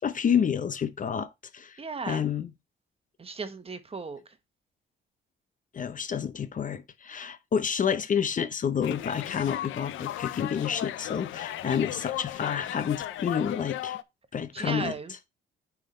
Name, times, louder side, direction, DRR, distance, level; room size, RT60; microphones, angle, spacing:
voice 1, 0.0-1.8 2.1-2.5 5.7-14.0 14.3-14.9, left 7 dB, 40° left, 0.7 m, -29 dB
voice 2, 1.8-2.2 3.2-4.4 14.5-15.1, right 4 dB, 30° right, 1.2 m, -36 dB
sound 1, 8.8-14.0, left 13 dB, 80° left, 0.6 m, -36 dB
9.0 x 3.7 x 4.3 m
cardioid pair, 90°, 20 cm